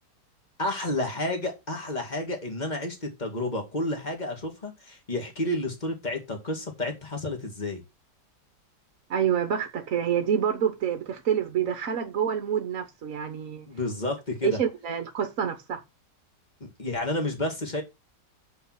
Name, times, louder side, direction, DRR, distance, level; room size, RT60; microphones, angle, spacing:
voice 1, 0.6-7.8 13.7-14.6 16.6-17.8, left 1 dB, 25° left, 2.2 m, -30 dB
voice 2, 9.1-13.7 14.4-15.8, right 8 dB, 55° right, 1.3 m, -27 dB
6.5 x 5.4 x 6.1 m
omnidirectional pair, 1.9 m